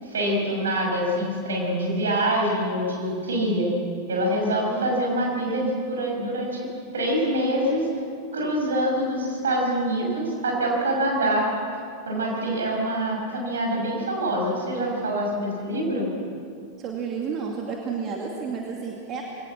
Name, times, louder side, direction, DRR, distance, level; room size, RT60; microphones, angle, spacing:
voice 1, 0.0-3.7 4.1-6.7 6.9-7.9 8.3-11.5 12.0-16.1, right 1 dB, 65° right, 0 dB, 6.3 m, -25 dB
voice 2, 16.8-19.2, right 5 dB, 30° right, 0 dB, 2.4 m, -31 dB
22.5 x 18.0 x 7.4 m, 2.4 s
figure-of-eight pair, 90°, 0 cm